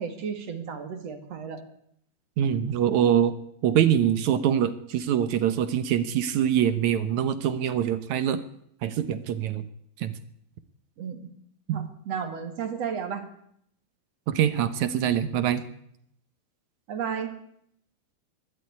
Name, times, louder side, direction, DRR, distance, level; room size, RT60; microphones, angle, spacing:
voice 1, 0.0-1.6 11.0-11.3 11.7-13.3 16.9-17.3, right 7 dB, 50° right, 7 dB, 2.8 m, -33 dB
voice 2, 2.4-3.3 3.6-8.4 8.8-9.6 10.0-10.1 11.7-11.9 14.3-15.6, right 9 dB, 65° right, 12 dB, 1.9 m, -24 dB
21.0 x 13.0 x 9.5 m, 0.72 s
omnidirectional pair, 4.4 m